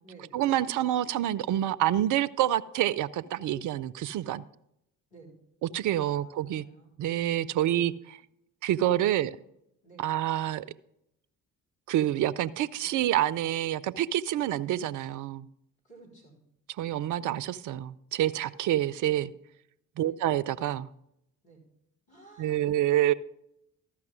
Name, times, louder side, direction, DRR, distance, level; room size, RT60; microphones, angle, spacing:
voice 1, 0.3-4.4 5.7-6.6 7.0-8.2 8.6-9.4 10.0-10.7 11.9-15.5 16.8-19.3 20.0-20.9 22.4-23.1, right 12 dB, 45° right, 0.5 m, -27 dB
voice 2, 6.0-6.9 7.5-7.9 8.9-9.4 9.8-10.1 15.8-16.4 20.0-20.2 21.4-21.6 22.1-22.7, right 3 dB, 75° left, 4.0 m, -54 dB
13.0 x 5.9 x 6.2 m
figure-of-eight pair, 45°, 45 cm